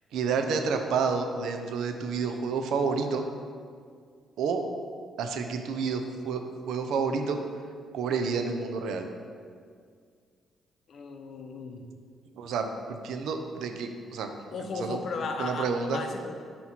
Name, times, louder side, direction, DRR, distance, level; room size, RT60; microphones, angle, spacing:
voice 1, 0.1-3.3 4.4-4.6 5.2-7.4 7.9-9.1 12.4-14.3 14.8-15.0 15.4-16.0, right 5 dB, 80° right, 5 dB, 0.5 m, -29 dB
voice 2, 10.9-11.8 14.5-16.4, left 3 dB, 60° left, 4 dB, 0.6 m, -35 dB
7.7 x 3.0 x 4.3 m, 2.1 s
cardioid pair, 90°, 0 cm